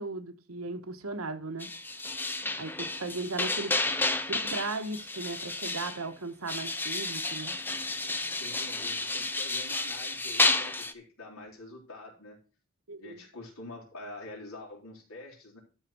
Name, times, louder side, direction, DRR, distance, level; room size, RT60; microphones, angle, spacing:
voice 1, 0.0-1.7 2.6-3.7 4.3-7.6 12.9-13.2, right 3 dB, 85° right, 1.3 m, -37 dB
sound 1, 1.6-6.1 6.5-10.9, left 2 dB, 10° left, 0.5 m, -31 dB
voice 2, 8.2-12.4 13.0-15.6, left 2 dB, 80° left, 4.0 m, -46 dB
12.5 x 4.2 x 6.1 m
head